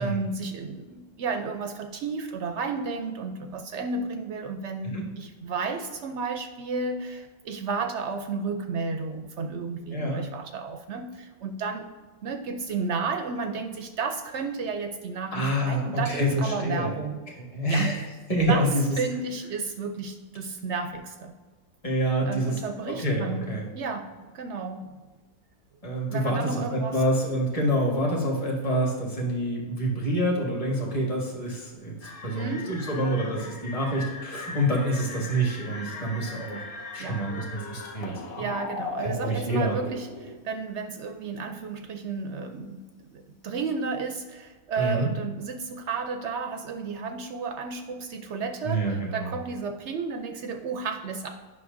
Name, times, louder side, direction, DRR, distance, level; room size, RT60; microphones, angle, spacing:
voice 1, 0.0-11.9 12.2-17.2 17.7-17.9 18.5-18.7 19.0-21.3 22.3-23.5 23.7-24.9 26.1-27.0 32.3-32.7 37.0-37.2 38.4-42.8 43.1-51.3, right 4 dB, 65° right, 6 dB, 0.7 m, -32 dB
voice 2, 9.9-10.2 15.3-17.0 17.4-18.0 18.3-19.0 21.8-23.7 25.8-36.6 36.9-38.5 39.0-39.8 44.8-45.1 48.6-49.3, right 1 dB, 25° left, -2 dB, 1.5 m, -27 dB
sound 1, 32.0-40.3, left 3 dB, 45° left, 0.8 m, -38 dB
9.4 x 5.9 x 2.6 m, 1.4 s
omnidirectional pair, 1.5 m